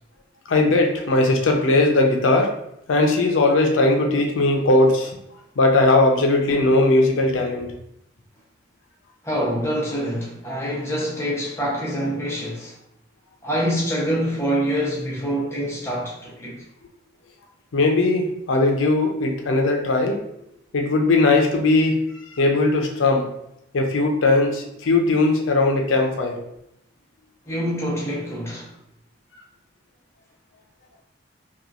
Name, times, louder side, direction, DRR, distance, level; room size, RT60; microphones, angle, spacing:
voice 1, 0.5-2.5 2.9-5.2 5.6-7.7 17.7-20.2 20.7-23.3 23.7-26.4, left 2 dB, 85° left, 2 dB, 0.5 m, -19 dB
voice 2, 9.2-12.7 13.4-16.6 27.5-28.7, equal, 15° left, -5 dB, 0.7 m, -25 dB
2.9 x 2.3 x 2.4 m, 0.79 s
head